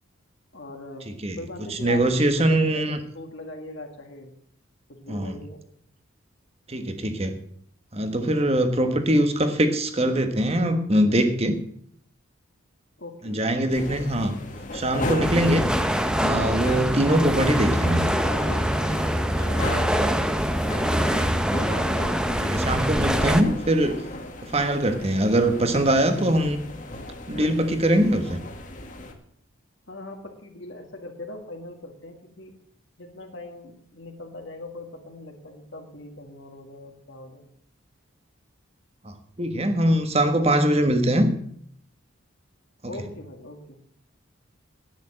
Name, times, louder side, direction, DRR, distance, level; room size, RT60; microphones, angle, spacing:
voice 1, 0.5-1.1 1.4-2.0 2.3-4.3 4.9-5.6 8.8-9.0 13.0-13.6 23.1-23.5 29.9-32.6 33.0-37.5 42.9-43.8, left 2 dB, 60° left, 3 dB, 1.8 m, -41 dB
voice 2, 1.7-3.0 5.1-5.3 6.7-7.4 7.9-11.6 13.2-14.3 14.7-15.7 16.1-18.0 22.4-24.0 24.4-26.6 27.3-28.4 39.0-41.3 42.8-42.9, right 1 dB, 30° right, 8 dB, 1.4 m, -22 dB
sound 1, 13.7-29.1, left 1 dB, 40° left, 1.7 m, -35 dB
sound 2, 15.2-23.4, equal, 5° right, 0.7 m, -24 dB
10.5 x 9.4 x 7.7 m, 0.65 s
head